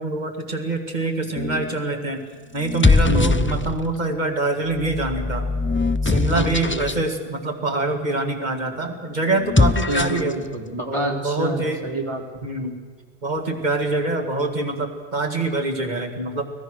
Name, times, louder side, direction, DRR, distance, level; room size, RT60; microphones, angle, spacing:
voice 1, 0.0-2.2 2.5-5.5 6.0-10.4 10.9-11.8 12.4-12.8 13.2-16.4, right 2 dB, 40° right, 4 dB, 2.2 m, -25 dB
sound 1, 1.4-1.8 2.6-4.0 4.7-7.0 9.4-10.3, left 3 dB, 20° left, 0.3 m, -21 dB
voice 2, 3.1-3.7 6.3-6.9 9.9-12.5, right 1 dB, 25° right, 3 dB, 2.4 m, -28 dB
24.5 x 18.0 x 6.4 m, 1.5 s
omnidirectional pair, 1.1 m